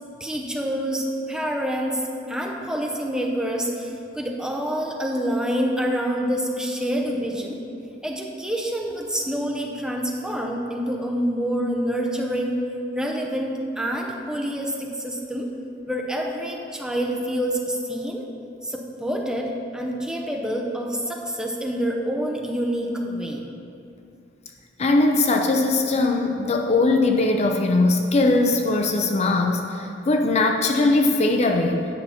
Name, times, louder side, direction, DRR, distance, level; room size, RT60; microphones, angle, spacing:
voice 1, 0.2-7.6 8.0-15.5 15.9-18.3 18.6-23.5, equal, 5° right, 0 dB, 0.7 m, -27 dB
voice 2, 24.8-31.9, left 2 dB, 40° left, 3 dB, 0.5 m, -20 dB
9.1 x 5.8 x 4.2 m, 2.6 s
head